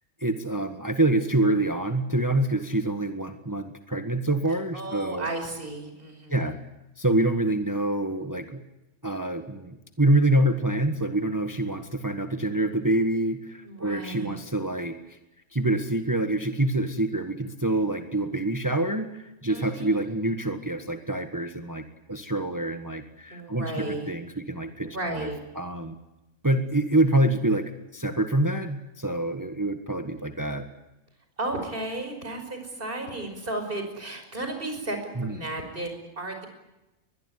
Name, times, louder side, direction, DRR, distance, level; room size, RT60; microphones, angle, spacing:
voice 1, 0.2-5.3 6.3-6.6 7.0-8.6 9.0-15.2 15.5-21.8 22.1-25.3 25.5-25.9 26.4-30.7 35.1-35.5, right 1 dB, 15° right, 7 dB, 1.5 m, -26 dB
voice 2, 4.7-6.4 13.7-14.4 19.5-20.0 23.3-24.1 24.8-25.4 31.4-36.5, right 2 dB, 45° right, 5 dB, 5.7 m, -34 dB
22.5 x 21.5 x 9.7 m, 0.97 s
omnidirectional pair, 1.3 m